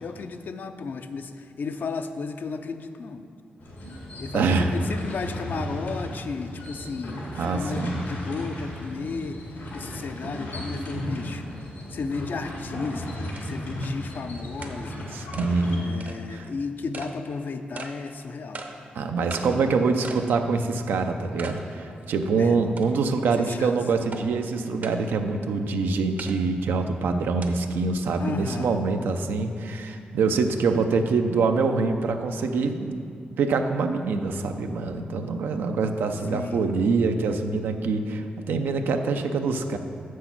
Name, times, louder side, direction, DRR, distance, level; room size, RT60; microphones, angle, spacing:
voice 1, 0.0-3.3 4.2-9.4 9.7-11.4 11.9-15.2 15.8-18.6 22.4-22.6 23.4-23.8 28.2-28.8 35.5-35.6 36.3-36.7, left 4 dB, 65° left, 8 dB, 0.5 m, -34 dB
sound 1, 3.6-15.8, equal, 90° left, 1.9 m, -35 dB
voice 2, 4.3-4.7 7.3-8.0 15.1-15.9 16.3-16.5 18.9-33.0 33.4-39.8, right 4 dB, 90° right, 6 dB, 0.5 m, -25 dB
sound 2, 12.6-12.7 13.4-13.5 13.8-13.9 14.6-14.8 15.3-15.5 16.0-16.2 16.9-17.1 17.8-17.9 18.5-18.7 19.3-19.5 20.0-20.3 20.7-20.8 21.4-21.6 22.0-22.1 22.8-23.2 24.1-24.2 24.8-25.0 26.2-26.4 27.4-27.5, right 3 dB, 55° right, 0.8 m, -38 dB
6.9 x 6.3 x 5.9 m, 2.3 s
cardioid pair, 60°, 3 cm